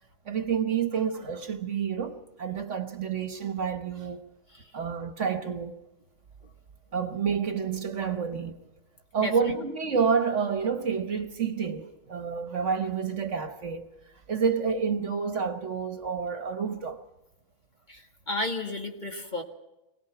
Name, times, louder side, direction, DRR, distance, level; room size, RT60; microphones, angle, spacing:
voice 1, 0.3-4.3 4.7-5.8 6.9-8.6 9.1-13.9 14.3-17.0, right 6 dB, 60° right, 1.4 m, -29 dB
voice 2, 17.9-19.4, left 2 dB, 30° left, 2.2 m, -33 dB
25.5 x 18.0 x 5.9 m
omnidirectional pair, 1.5 m